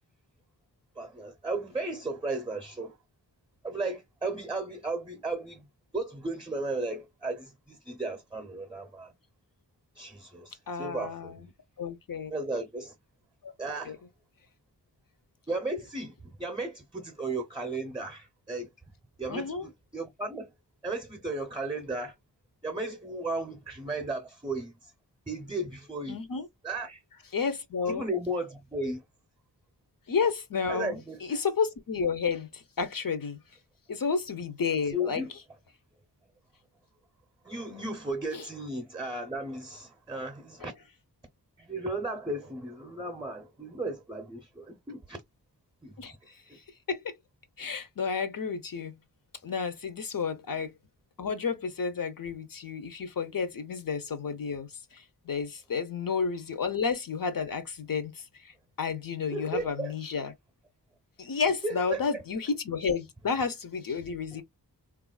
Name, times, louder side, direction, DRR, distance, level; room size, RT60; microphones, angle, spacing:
voice 1, 1.0-3.0 3.6-5.6 5.9-9.1 10.0-11.5 12.3-12.9 13.6-13.9 15.5-18.7 19.2-20.5 20.8-22.1 22.6-24.9 25.3-26.2 26.6-27.0 27.9-29.0 30.7-31.2 34.9-35.3 37.4-40.7 41.6-45.2 45.8-45.9 46.5-46.6 59.3-59.9 61.6-62.2 64.3-64.4, right 2 dB, 10° right, 0.6 m, -35 dB
voice 2, 10.7-11.5 11.8-12.3 13.4-13.5 13.9-14.0 19.3-19.7 26.1-26.5 27.3-28.1 30.1-33.4 33.9-35.2 37.7-37.9 38.3-38.5 40.6-40.7 46.0-46.4 46.9-47.1 47.6-49.0 49.4-50.7 51.2-60.3 61.2-64.4, left 5 dB, 55° left, 0.6 m, -31 dB
3.4 x 2.4 x 2.2 m
wide cardioid pair, 65°, 40 cm